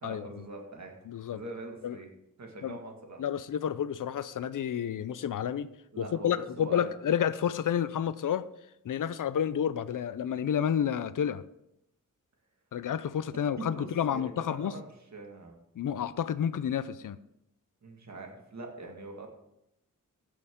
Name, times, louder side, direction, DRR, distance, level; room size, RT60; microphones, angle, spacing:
voice 1, 0.0-2.1 2.4-3.2 5.9-6.9 13.6-15.6 17.8-19.3, right 2 dB, 55° right, 2 dB, 1.9 m, -43 dB
voice 2, 1.1-1.4 1.8-2.0 2.6-2.8 3.2-5.7 6.0-8.5 8.8-11.4 12.7-14.7 15.8-17.2, left 9 dB, 75° left, 15 dB, 0.6 m, -30 dB
15.5 x 6.5 x 3.7 m, 0.81 s
wide cardioid pair, 145°, 32 cm